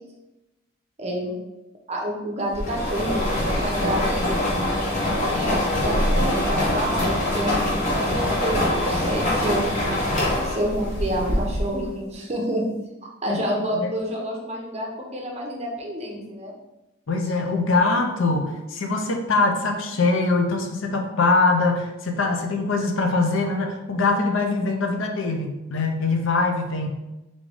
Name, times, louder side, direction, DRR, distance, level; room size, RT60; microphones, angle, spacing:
voice 1, 1.0-1.3 1.9-4.3 5.2-7.6 7.9-9.7 10.4-12.6 13.2-16.5 17.2-17.3, equal, 30° right, 0 dB, 0.8 m, -29 dB
sound 1, 2.5-11.9, left 1 dB, 35° left, 1.1 m, -24 dB
voice 2, 17.1-26.9, left 3 dB, 65° left, 4 dB, 0.6 m, -23 dB
3.8 x 3.7 x 3.4 m, 1.0 s
head